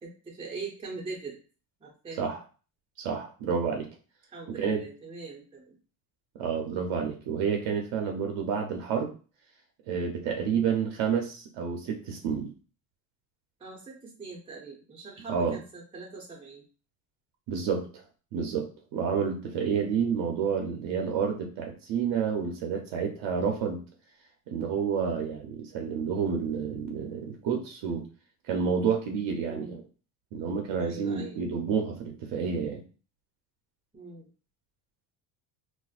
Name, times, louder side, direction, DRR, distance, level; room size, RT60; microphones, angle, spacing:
voice 1, 0.0-1.4 1.8-2.2 4.3-5.8 13.6-16.6 29.4-29.8 30.8-31.4 33.9-34.3, right 4 dB, 10° right, -2 dB, 0.6 m, -42 dB
voice 2, 3.0-3.9 4.5-4.8 6.3-9.1 9.9-12.5 15.3-15.6 17.5-18.0 18.3-23.8 24.5-28.0 28.5-29.8 30.3-32.8, right 6 dB, 65° right, 3 dB, 0.7 m, -29 dB
4.2 x 2.1 x 2.4 m, 0.38 s
cardioid pair, 115°, 49 cm